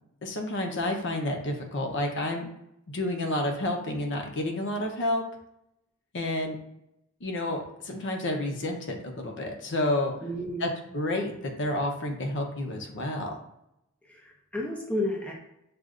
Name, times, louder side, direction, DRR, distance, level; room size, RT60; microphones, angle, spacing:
voice 1, 0.2-2.5 2.9-5.2 6.1-6.6 7.2-10.1 10.6-13.3, left 1 dB, 55° left, 3 dB, 0.7 m, -30 dB
voice 2, 10.2-10.7 14.1-15.3, left 1 dB, 5° left, -1 dB, 0.5 m, -32 dB
6.3 x 2.5 x 2.4 m, 0.82 s
head